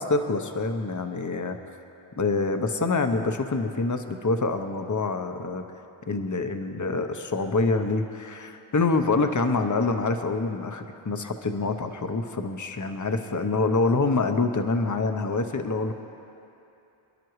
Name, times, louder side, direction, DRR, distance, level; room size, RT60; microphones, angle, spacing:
voice 1, 0.0-1.6 2.2-5.6 6.1-15.9, left 3 dB, 40° left, 6 dB, 0.8 m, -26 dB
27.0 x 11.0 x 3.1 m, 2.8 s
wide cardioid pair, 55°, 48 cm